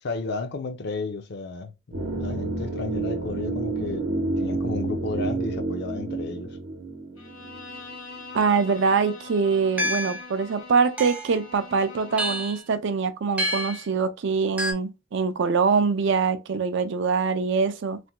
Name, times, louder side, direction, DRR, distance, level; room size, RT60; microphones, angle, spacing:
voice 1, 0.0-1.7 2.1-4.1 4.4-6.6, left 3 dB, 55° left, 0.5 m, -32 dB
sound 1, 1.9-7.9 8.2-8.3, right 2 dB, 80° right, 0.8 m, -29 dB
Bowed string instrument, 7.2-12.6, left 3 dB, 80° left, 1.0 m, -43 dB
voice 2, 8.3-18.0, right 5 dB, 60° right, 0.4 m, -24 dB
sound 2, 9.8-10.3 11.0-11.4 12.2-12.6 13.4-13.8 14.6-14.7, equal, 10° right, 0.5 m, -28 dB
3.3 x 2.2 x 2.8 m
head